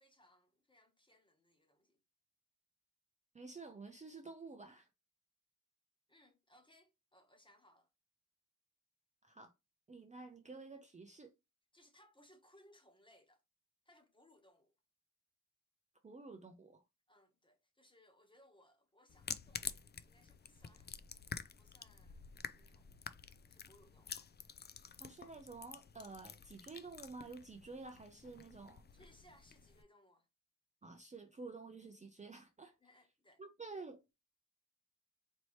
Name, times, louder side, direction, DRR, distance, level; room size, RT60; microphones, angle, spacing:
voice 1, 0.0-2.0 6.1-7.9 11.7-13.4 13.8-14.7 17.1-20.9 21.2-23.0 23.3-24.2 28.9-30.3 32.8-33.4, left 1 dB, 15° left, 1.2 m, -67 dB
voice 2, 3.3-4.9 9.2-9.5 9.9-11.3 16.0-16.8 25.0-28.8 30.8-32.7 33.4-34.0, right 3 dB, 25° right, 0.5 m, -51 dB
sound 1, 19.1-29.8, left 6 dB, 35° left, 0.4 m, -49 dB
4.3 x 2.9 x 3.1 m
wide cardioid pair, 130°, 32 cm